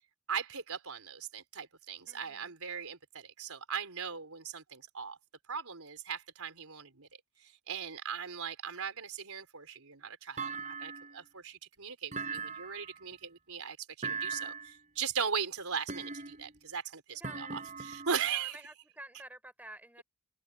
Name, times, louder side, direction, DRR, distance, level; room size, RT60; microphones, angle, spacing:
voice 1, 0.3-5.2 5.5-7.1 7.4-18.6, right 7 dB, 85° right, 3.7 m, -39 dB
voice 2, 2.1-2.5 17.1-17.7 18.3-20.0, right 1 dB, 5° right, 5.1 m, -50 dB
Thump thud, 10.4-11.3 12.1-13.0 14.0-14.8 15.9-16.6 17.2-18.3, right 5 dB, 35° right, 4.9 m, -39 dB
open air
head